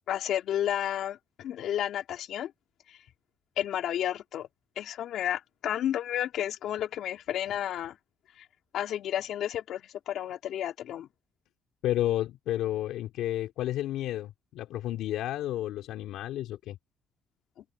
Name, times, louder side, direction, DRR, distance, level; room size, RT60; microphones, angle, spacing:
voice 1, 0.1-2.5 2.9-3.0 3.6-4.5 4.8-8.0 8.7-11.1, left 11 dB, 55° left, 4.1 m, -31 dB
voice 2, 11.8-16.8, left 13 dB, 70° left, 3.3 m, -31 dB
cardioid pair, 175°, 0 cm